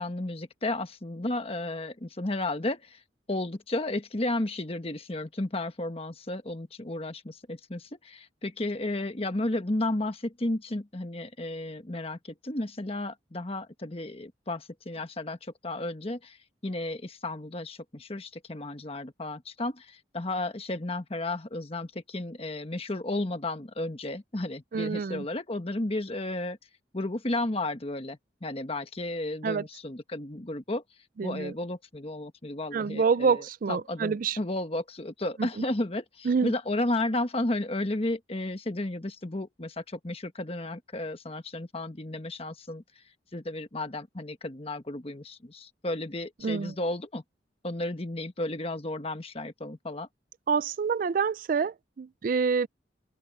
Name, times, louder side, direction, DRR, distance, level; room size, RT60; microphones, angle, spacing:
voice 1, 0.0-3.0 3.3-16.4 16.6-26.6 26.9-30.8 31.2-42.8 43.3-47.2 47.6-50.1, left 2 dB, 35° left, 1.3 m, -33 dB
voice 2, 24.7-25.2 29.4-29.6 31.2-31.5 32.7-34.4 36.3-36.5 46.4-46.7 50.5-52.7, right 5 dB, 50° right, 0.4 m, -27 dB
open air
head